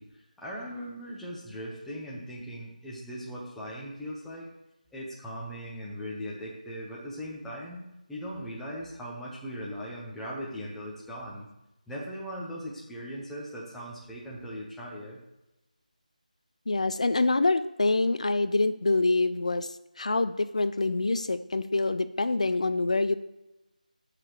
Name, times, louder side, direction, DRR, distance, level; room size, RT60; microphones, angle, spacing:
voice 1, 0.0-4.5 4.9-7.8 8.1-11.5 11.9-15.2, equal, ahead, -6 dB, 1.0 m, -39 dB
voice 2, 16.7-23.1, left 3 dB, 50° left, 13 dB, 0.6 m, -26 dB
19.0 x 6.8 x 3.1 m, 0.97 s
figure-of-eight pair, 165°, 4 cm